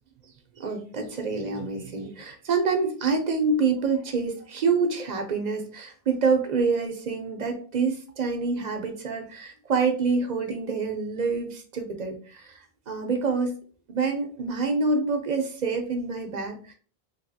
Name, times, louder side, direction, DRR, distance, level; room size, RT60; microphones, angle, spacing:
voice 1, 0.6-13.5 13.9-16.7, right 4 dB, 50° right, 4 dB, 0.6 m, -27 dB
3.3 x 2.7 x 2.6 m, 0.42 s
omnidirectional pair, 1.1 m